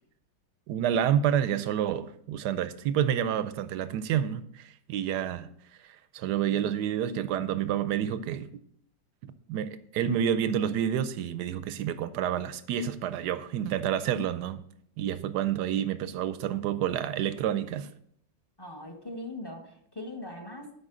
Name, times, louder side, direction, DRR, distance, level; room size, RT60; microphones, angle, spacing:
voice 1, 0.7-5.5 5.8-8.5 9.2-14.6 15.0-17.9, right 9 dB, 70° right, 1.0 m, -29 dB
voice 2, 18.6-20.7, left 1 dB, 20° left, 0.8 m, -40 dB
12.0 x 5.2 x 3.8 m
omnidirectional pair, 2.1 m